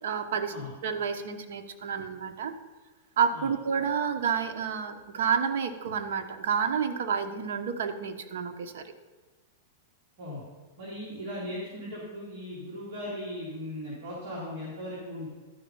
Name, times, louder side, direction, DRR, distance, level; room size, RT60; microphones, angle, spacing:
voice 1, 0.0-0.5 0.8-2.5 3.2-8.8, right 7 dB, 80° right, 7 dB, 0.9 m, -29 dB
voice 2, 10.8-15.3, left 1 dB, 50° right, -7 dB, 2.8 m, -38 dB
12.0 x 5.2 x 5.5 m, 1.4 s
supercardioid pair, 160°, 0 cm